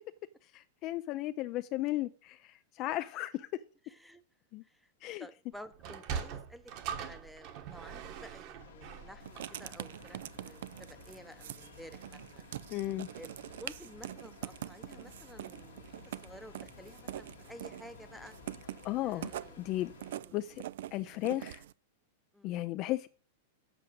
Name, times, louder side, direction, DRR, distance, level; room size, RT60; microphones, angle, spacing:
voice 1, 0.5-3.6 4.5-4.6 5.0-5.3 12.7-13.1 18.8-19.3 19.6-19.9 20.3-20.6 20.9-21.6 22.4-23.1, left 16 dB, 35° left, 0.4 m, -35 dB
voice 2, 3.8-4.2 4.6-4.9 5.2-12.5 13.1-18.3 19.0-19.6 20.1-20.4 22.3-22.6, equal, ahead, 0.8 m, -52 dB
Sliding door, 5.7-10.4, right 7 dB, 40° right, 1.3 m, -42 dB
sound 1, 8.6-20.2, left 7 dB, 85° left, 1.5 m, -55 dB
Writing, 9.2-21.7, right 12 dB, 70° right, 0.5 m, -45 dB
7.7 x 6.2 x 7.8 m
supercardioid pair, 160°, 0 cm